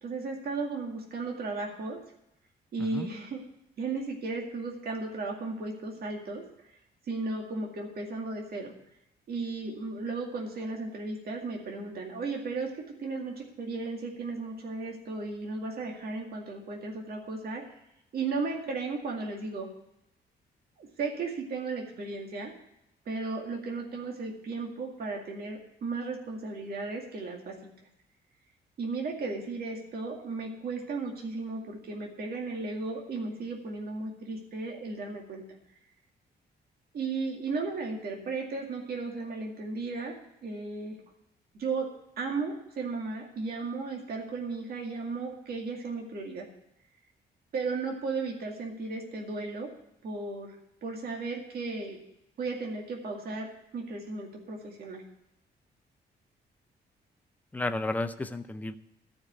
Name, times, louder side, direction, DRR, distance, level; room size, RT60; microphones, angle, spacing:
voice 1, 0.0-2.0 2.7-3.4 3.8-6.4 7.1-8.7 9.3-17.6 18.1-19.7 20.8-22.5 23.1-27.7 28.8-35.4 36.9-40.1 40.4-41.0 41.5-41.9 42.2-46.5 47.5-49.7 50.0-52.0 52.4-55.0, right 3 dB, 60° right, 0 dB, 2.2 m, -35 dB
voice 2, 57.5-58.8, left 2 dB, 10° left, 9 dB, 0.5 m, -32 dB
13.5 x 5.2 x 8.2 m, 0.81 s
cardioid pair, 145°, 18 cm